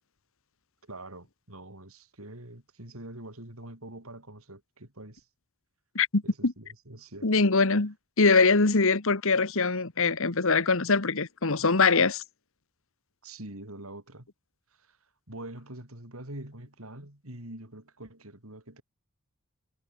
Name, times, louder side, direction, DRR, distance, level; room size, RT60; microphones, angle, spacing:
voice 1, 0.8-5.3 6.2-7.3 13.2-14.3 14.8-15.0 15.3-18.8, right 1 dB, 70° right, 5.3 m, -44 dB
voice 2, 5.9-6.5 7.2-12.2, left 4 dB, 65° left, 1.6 m, -23 dB
head